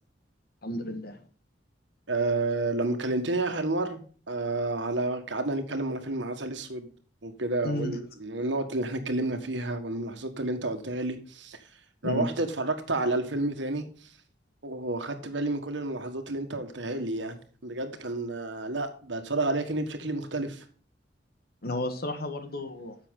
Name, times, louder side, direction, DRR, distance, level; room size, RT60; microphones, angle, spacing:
voice 1, 0.6-1.2 7.6-7.9 12.0-12.3 21.6-23.0, left 1 dB, 55° left, 8 dB, 1.5 m, -32 dB
voice 2, 2.1-4.0 4.3-6.9 7.2-11.6 12.0-14.1 14.6-17.4 17.6-20.6, right 2 dB, 80° right, 7 dB, 1.6 m, -30 dB
10.5 x 7.3 x 3.8 m, 0.41 s
head